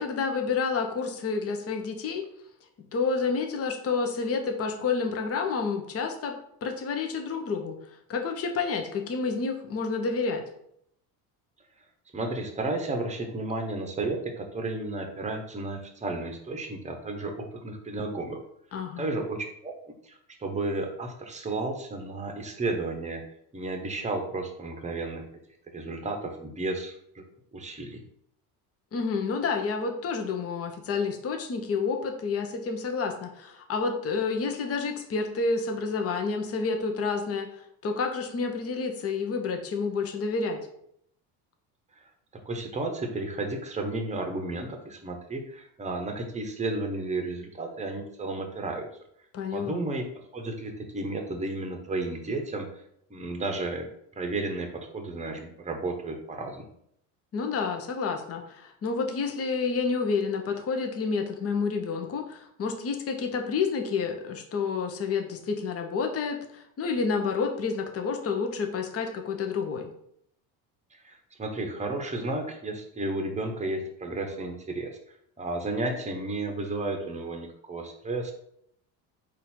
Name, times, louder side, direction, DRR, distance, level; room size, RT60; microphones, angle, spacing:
voice 1, 0.0-2.2 2.9-6.3 6.6-7.8 8.1-10.4 18.7-19.1 28.9-40.6 49.3-49.8 57.3-69.9, left 4 dB, 30° left, 4 dB, 0.8 m, -29 dB
voice 2, 12.1-18.4 19.0-19.7 20.0-23.2 23.5-25.2 25.7-27.2 27.5-28.0 42.5-48.9 49.5-50.1 50.3-52.7 53.1-53.9 54.2-56.7 71.0-74.9 75.4-78.3, right 2 dB, 15° right, 4 dB, 0.9 m, -32 dB
4.1 x 2.6 x 4.3 m, 0.71 s
supercardioid pair, 90°, 44 cm